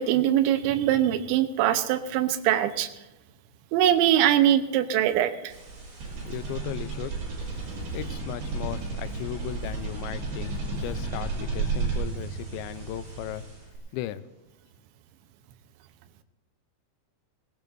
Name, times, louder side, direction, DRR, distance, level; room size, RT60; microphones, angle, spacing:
voice 1, 0.0-2.9 3.7-5.5, right 11 dB, 90° right, 9 dB, 3.2 m, -22 dB
sound 1, 5.5-13.8, right 4 dB, 60° right, 7.5 m, -33 dB
voice 2, 6.2-7.2 7.9-13.4 13.9-14.2, left 13 dB, 90° left, 13 dB, 3.0 m, -36 dB
20.0 x 19.0 x 2.6 m, 1.0 s
omnidirectional pair, 5.1 m